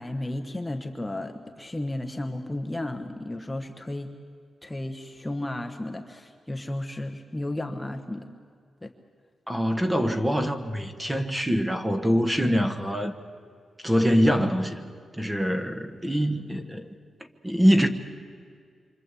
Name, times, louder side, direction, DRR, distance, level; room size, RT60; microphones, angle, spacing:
voice 1, 0.0-4.1 4.6-8.3 8.8-8.9, left 1 dB, 10° left, 1.1 m, -33 dB
voice 2, 9.5-13.1 13.8-14.8 15.1-16.9 17.4-17.9, equal, 10° right, 1.3 m, -24 dB
27.5 x 25.0 x 8.3 m
wide cardioid pair, 170°, 0 cm